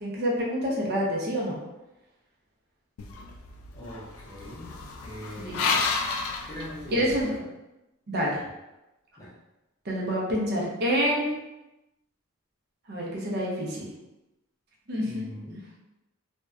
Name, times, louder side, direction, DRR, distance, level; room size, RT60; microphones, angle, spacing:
voice 1, 0.0-1.6 5.4-5.7 6.9-7.3 8.1-8.4 9.9-11.3 12.9-13.9 14.9-15.6, equal, 50° right, -3 dB, 0.5 m, -27 dB
sound 1, 3.0-7.3, left 4 dB, 70° left, 0.3 m, -31 dB
voice 2, 3.7-4.8 5.0-5.8 6.5-7.5 9.2-9.3 15.0-15.7, equal, 15° left, -7 dB, 0.6 m, -41 dB
2.6 x 2.1 x 2.3 m, 0.97 s
head